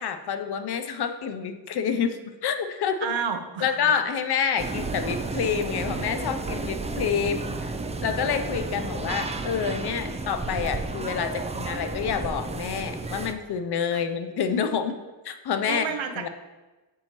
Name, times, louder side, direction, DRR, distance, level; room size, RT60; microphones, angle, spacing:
voice 1, 0.0-3.0 3.6-7.7 8.0-15.0 15.2-15.9 16.2-16.3, left 7 dB, 55° left, 8 dB, 0.6 m, -28 dB
voice 2, 3.0-3.9 8.8-9.1 13.9-14.0 15.6-16.3, right 6 dB, 75° right, 6 dB, 0.7 m, -31 dB
sound 1, 4.6-13.3, right 3 dB, 15° right, 0.3 m, -32 dB
7.5 x 4.5 x 2.9 m, 1.2 s
cardioid pair, 70°, 46 cm